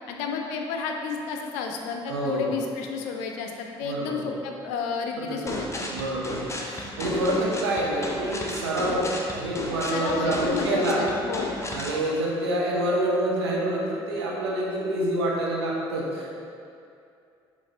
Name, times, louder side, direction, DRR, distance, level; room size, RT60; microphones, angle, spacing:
voice 1, 0.1-5.8 9.9-11.6, left 5 dB, 65° left, 3 dB, 0.6 m, -32 dB
voice 2, 2.1-2.5 3.8-4.3 5.2-9.0 9.3-11.0 11.7-16.4, right 1 dB, 80° right, -3 dB, 0.9 m, -27 dB
sound 1, 5.5-12.0, left 1 dB, 20° left, 0.9 m, -33 dB
7.1 x 3.2 x 4.2 m, 2.5 s
figure-of-eight pair, 50°, 14 cm